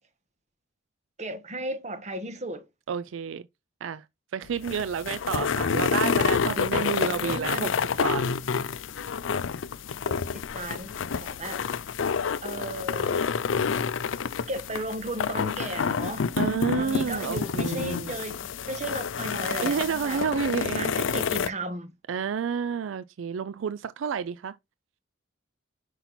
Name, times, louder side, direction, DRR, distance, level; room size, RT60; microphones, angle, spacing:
voice 1, 1.2-2.7 7.0-7.8 10.0-11.6 12.4-13.3 14.5-16.3 16.8-20.2 20.7-21.9, right 1 dB, 40° right, 1.2 m, -35 dB
voice 2, 2.9-3.4 3.8-4.0 4.3-7.7 8.0-8.2 16.4-18.1 19.6-21.2 22.1-24.5, right 7 dB, 80° right, 0.4 m, -30 dB
sound 1, 4.4-21.5, left 6 dB, 75° left, 0.5 m, -28 dB
5.9 x 5.5 x 4.2 m
head